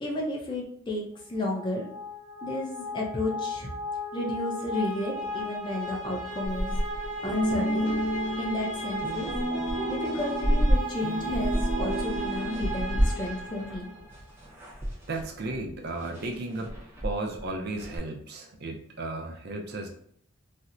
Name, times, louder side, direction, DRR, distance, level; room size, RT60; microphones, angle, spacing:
voice 1, 0.0-1.0 1.3-1.8 2.4-3.7 4.1-6.7 7.2-7.9 8.4-9.3 9.9-13.9, left 1 dB, 20° left, -1 dB, 0.6 m, -32 dB
sound 1, 1.4-14.2, equal, 90° left, 0.7 m, -36 dB
sound 2, 6.4-10.8 11.2-18.0, equal, 10° right, 0.8 m, -32 dB
sound 3, 7.2-13.3, equal, 75° right, 1.0 m, -32 dB
voice 2, 15.1-16.7 17.0-19.9, right 2 dB, 50° right, 2 dB, 0.5 m, -34 dB
4.1 x 2.0 x 2.5 m, 0.64 s
head